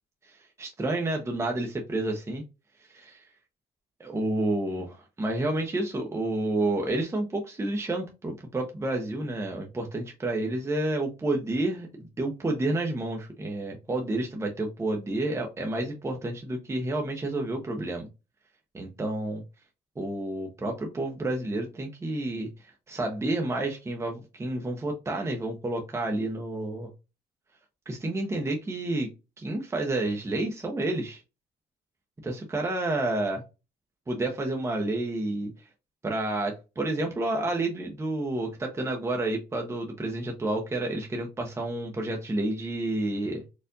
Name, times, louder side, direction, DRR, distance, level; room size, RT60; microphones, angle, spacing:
voice 1, 0.2-2.4 2.9-3.3 4.0-18.1 18.7-19.4 20.0-26.9 27.9-29.1 29.4-31.2 32.2-33.4 34.1-35.5 36.0-43.4, right 2 dB, 15° right, 2 dB, 0.7 m, -30 dB
4.4 x 2.5 x 2.6 m, 0.27 s
cardioid pair, 110°, 17 cm